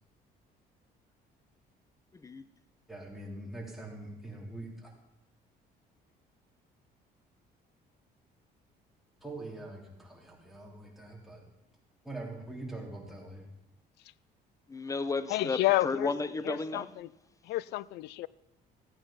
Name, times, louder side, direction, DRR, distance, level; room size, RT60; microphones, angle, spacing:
voice 1, 2.1-2.4 14.7-16.9, left 3 dB, 20° left, 0.8 m, -33 dB
voice 2, 2.9-4.9 9.2-11.4 12.0-13.5, right 2 dB, ahead, 3.2 m, -43 dB
voice 3, 15.3-16.1 16.4-17.1 17.4-18.3, left 17 dB, 80° left, 0.4 m, -30 dB
15.0 x 8.8 x 5.8 m
cardioid pair, 110°, 17 cm